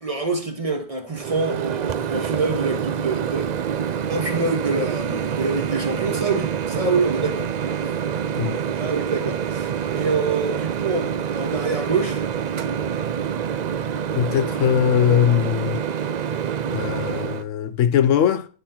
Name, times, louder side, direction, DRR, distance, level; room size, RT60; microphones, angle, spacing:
voice 1, 0.0-3.5 4.1-7.5 8.7-12.2, right 3 dB, 30° right, 1.2 m, -26 dB
Microwave oven, 1.2-17.4, right 8 dB, 70° right, 0.4 m, -26 dB
voice 2, 14.1-15.8 16.7-18.5, left 9 dB, 85° left, 1.0 m, -20 dB
10.5 x 4.0 x 5.8 m
omnidirectional pair, 1.3 m